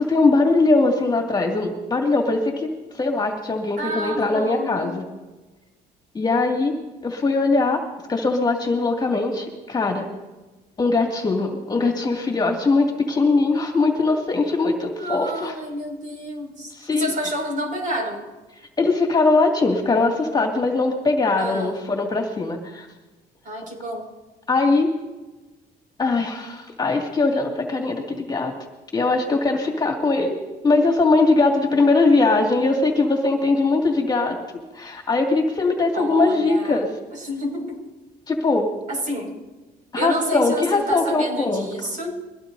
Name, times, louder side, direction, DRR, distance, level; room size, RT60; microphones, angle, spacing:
voice 1, 0.0-2.7 2.9-5.0 6.1-6.7 7.0-7.8 8.1-10.1 10.8-15.6 16.7-17.1 18.8-22.9 24.5-24.9 26.0-28.5 28.9-30.4 30.6-34.4 34.7-36.9 38.3-38.7 39.9-41.7, left 3 dB, 25° left, 2 dB, 2.3 m, -21 dB
voice 2, 3.8-4.9 15.0-18.3 21.4-21.8 23.4-24.1 35.9-36.8 37.1-37.9 38.9-39.4 39.9-42.2, equal, 50° right, 1 dB, 6.0 m, -29 dB
23.0 x 16.5 x 2.7 m, 1.1 s
cardioid pair, 110°, 17 cm